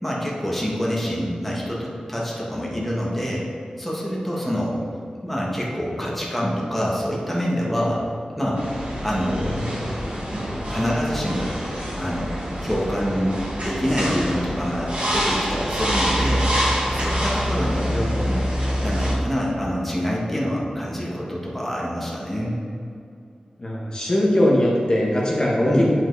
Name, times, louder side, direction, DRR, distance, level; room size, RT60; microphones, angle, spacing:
voice 1, 0.0-3.5 3.8-4.8 5.2-8.0 8.4-8.6 9.0-9.9 10.7-11.5 11.9-13.3 13.6-16.5 16.9-18.0 18.3-18.4 18.8-22.6 25.6-25.8, equal, 5° left, -5 dB, 1.5 m, -26 dB
sound 1, 8.5-19.1, equal, 55° right, 1.8 m, -25 dB
voice 2, 17.8-18.2 23.6-25.8, left 1 dB, 35° left, -5 dB, 1.4 m, -21 dB
8.9 x 5.0 x 4.1 m, 2.4 s
wide cardioid pair, 70°, 2 cm